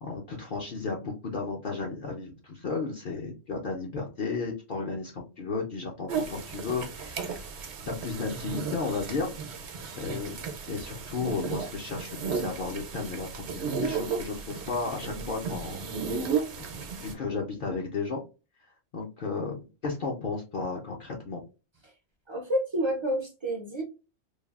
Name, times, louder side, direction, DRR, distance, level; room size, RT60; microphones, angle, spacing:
voice 1, 0.0-7.5 7.9-9.3 10.0-10.4 10.7-16.3 16.6-16.7 17.0-18.2 18.9-21.4, left 4 dB, 55° left, 0.7 m, -34 dB
sound 1, 6.1-17.1, right 5 dB, 70° right, 0.9 m, -34 dB
voice 2, 22.3-23.8, equal, 35° right, 0.5 m, -29 dB
3.2 x 2.3 x 2.3 m
omnidirectional pair, 1.2 m